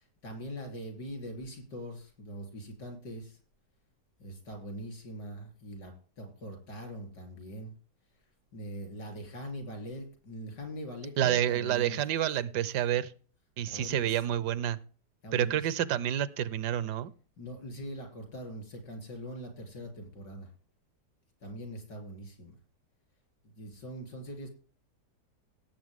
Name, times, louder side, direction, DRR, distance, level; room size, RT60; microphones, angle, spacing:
voice 1, 0.0-3.4 4.2-7.7 8.5-12.0 13.7-14.2 15.2-15.7 17.4-20.5 21.4-22.5 23.4-24.5, equal, 80° left, 3 dB, 4.2 m, -42 dB
voice 2, 11.2-13.1 13.6-14.8 15.3-17.1, right 11 dB, 80° right, 18 dB, 1.3 m, -29 dB
17.0 x 7.8 x 3.7 m, 0.40 s
omnidirectional pair, 1.8 m